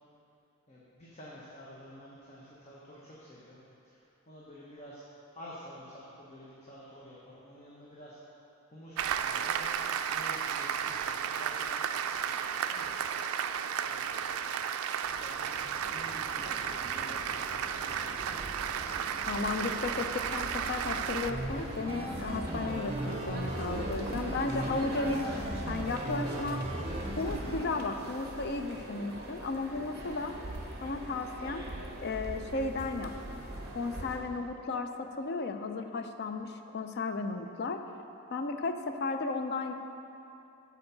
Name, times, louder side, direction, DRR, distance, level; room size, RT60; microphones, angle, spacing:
voice 1, 0.7-3.6 3.8-5.0 5.3-8.2 8.7-13.0 13.9-14.5 15.2-18.9 19.3-19.7, equal, 30° left, -7 dB, 0.9 m, -50 dB
Applause, 9.0-21.3, right 8 dB, 80° right, 0.3 m, -33 dB
sound 1, 15.0-34.2, right 1 dB, 45° right, 0.9 m, -42 dB
voice 2, 19.3-25.4 25.7-26.6 27.2-30.3 30.8-31.7 32.0-33.1 33.7-37.8 38.3-39.7, left 3 dB, 50° left, 7 dB, 0.4 m, -34 dB
sound 2, 21.3-27.6, right 1 dB, 25° right, 0.6 m, -37 dB
6.9 x 4.6 x 6.7 m, 2.9 s
head